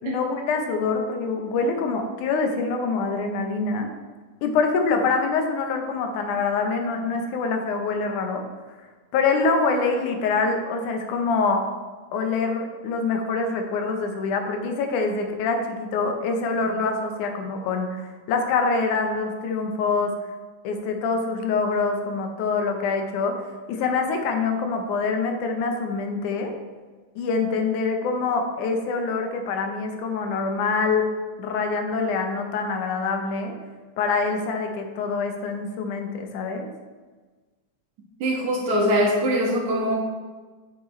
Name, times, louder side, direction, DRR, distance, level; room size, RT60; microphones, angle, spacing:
voice 1, 0.0-3.9 4.4-8.4 9.1-11.6 12.1-20.1 20.6-23.3 23.7-26.5 27.2-31.0 31.4-33.5 34.0-36.7, left 4 dB, 85° left, 4 dB, 2.4 m, -25 dB
voice 2, 38.2-40.0, equal, 70° right, -2 dB, 2.8 m, -22 dB
7.8 x 7.7 x 3.1 m, 1.3 s
omnidirectional pair, 3.4 m